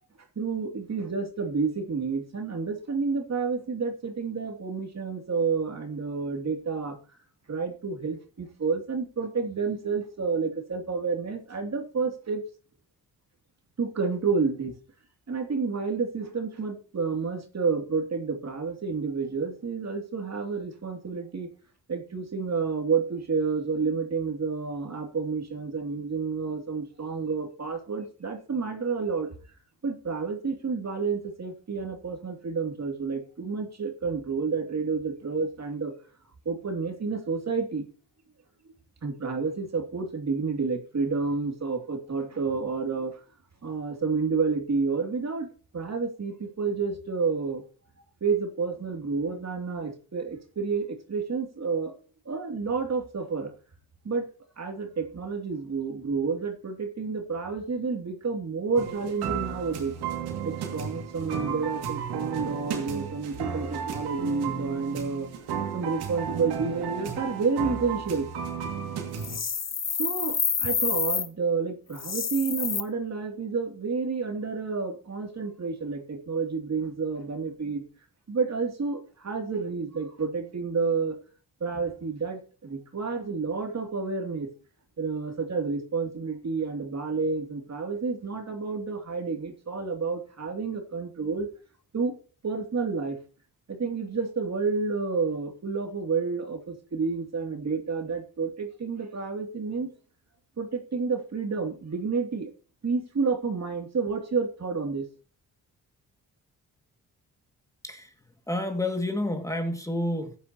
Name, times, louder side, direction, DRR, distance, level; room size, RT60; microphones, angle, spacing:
voice 1, 0.4-7.0 7.5-12.4 13.8-14.8 15.3-21.5 21.9-29.3 29.8-35.9 36.4-37.8 39.0-43.2 43.6-45.5 45.7-47.6 48.2-51.9 52.2-53.5 54.0-54.3 54.6-59.9 60.4-65.3 65.7-68.3 70.0-77.8 78.3-81.2 81.6-84.5 85.0-91.5 91.9-92.1 92.4-93.2 93.7-99.9 100.6-102.5 102.8-105.1, right 4 dB, 45° right, 3 dB, 2.8 m, -30 dB
sound 1, 58.8-69.4, right 7 dB, 85° right, 2.5 m, -34 dB
sound 2, 69.2-71.3 71.9-72.8, left 6 dB, 45° left, 1.4 m, -28 dB
voice 2, 108.5-110.4, left 1 dB, 10° left, 5 dB, 2.3 m, -29 dB
15.0 x 10.0 x 3.0 m, 0.38 s
supercardioid pair, 55°, 38 cm